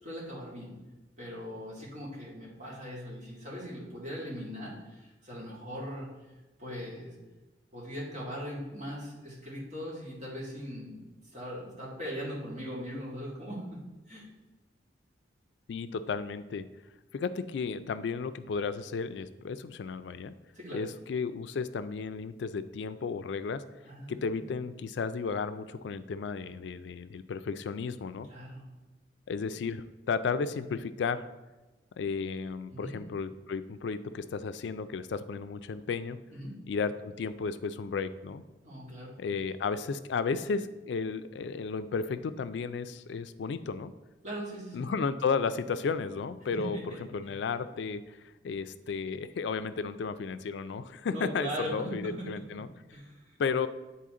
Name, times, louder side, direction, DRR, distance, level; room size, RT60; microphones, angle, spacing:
voice 1, 0.0-0.7 1.2-6.1 6.6-7.1 7.7-11.0 11.3-13.8 14.1-14.3 20.5-20.8 23.8-24.5 28.3-28.7 32.7-33.0 36.3-36.6 38.6-39.1 44.2-44.9 46.5-47.3 51.0-52.4 52.9-53.4, equal, 40° right, -6 dB, 2.2 m, -40 dB
voice 2, 15.7-16.6 17.1-20.4 20.7-23.6 24.1-28.3 29.3-31.2 32.0-36.2 36.7-38.4 39.2-43.9 44.7-48.2 48.4-52.7 53.4-53.7, left 5 dB, 75° left, 12 dB, 0.3 m, -33 dB
8.4 x 4.2 x 3.7 m, 1.1 s
head